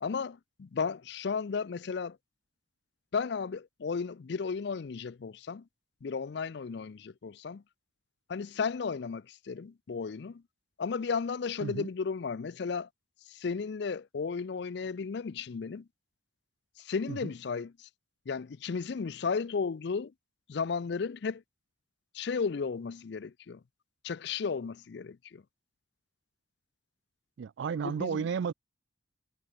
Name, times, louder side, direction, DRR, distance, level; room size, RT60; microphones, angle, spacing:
voice 1, 0.0-2.2 3.1-5.6 6.0-7.6 8.3-10.4 10.8-12.9 13.3-15.8 16.8-17.9 18.3-20.1 20.5-21.4 22.1-23.6 24.0-25.4 27.8-28.3, left 5 dB, 55° left, 0.4 m, -34 dB
voice 2, 27.4-28.5, right 6 dB, 65° right, 0.3 m, -33 dB
head